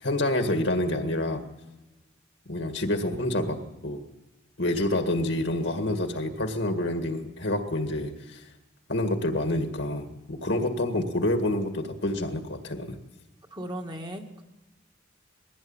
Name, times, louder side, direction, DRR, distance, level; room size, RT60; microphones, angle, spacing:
voice 1, 0.0-1.4 2.5-4.0 4.6-8.4 8.9-13.0, left 1 dB, 70° left, 6 dB, 2.0 m, -28 dB
voice 2, 13.5-14.4, equal, 20° right, 3 dB, 1.9 m, -36 dB
20.5 x 16.0 x 8.9 m, 1.1 s
head